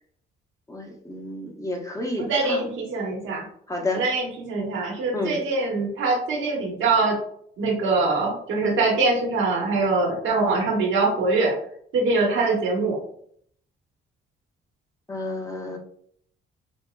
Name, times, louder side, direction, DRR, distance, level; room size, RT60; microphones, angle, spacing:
voice 1, 0.7-2.8 3.7-4.0 5.1-5.4 15.1-15.8, left 2 dB, 15° left, 0 dB, 0.9 m, -30 dB
voice 2, 2.2-3.4 3.9-7.2 7.6-11.5 11.9-13.0, right 3 dB, 75° right, -1 dB, 1.1 m, -23 dB
5.3 x 2.2 x 2.2 m, 0.65 s
cardioid pair, 90°, 20 cm